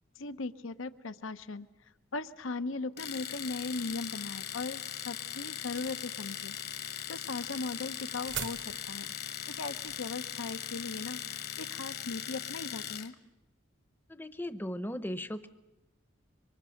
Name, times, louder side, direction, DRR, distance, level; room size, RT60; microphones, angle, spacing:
voice 1, 0.2-1.7 2.1-8.6 8.9-9.1 9.5-13.1, left 3 dB, 80° left, 12 dB, 0.8 m, -38 dB
Domestic sounds home sounds, 3.0-13.1, left 9 dB, 50° left, 1.2 m, -40 dB
sound 1, 6.7-11.8, right 8 dB, 60° right, 1.1 m, -45 dB
voice 2, 14.1-15.5, equal, 10° left, 11 dB, 0.8 m, -37 dB
25.5 x 24.0 x 6.5 m, 1.0 s
head